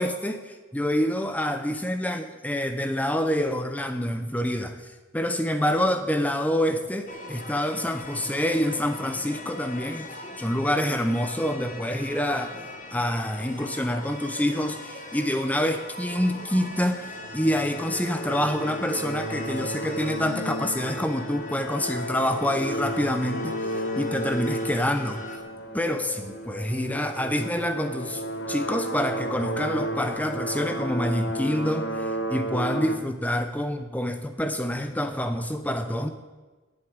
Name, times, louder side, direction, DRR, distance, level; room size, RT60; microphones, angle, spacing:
voice 1, 0.0-4.8 5.1-10.1 10.4-12.6 12.9-23.7 24.0-25.2 25.7-28.2 28.5-36.1, equal, 10° left, 8 dB, 0.7 m, -27 dB
sound 1, 7.1-25.4, left 2 dB, 40° left, 1.4 m, -40 dB
sound 2, 16.7-33.0, equal, 65° left, 1.3 m, -33 dB
10.5 x 8.0 x 8.8 m, 1.2 s
head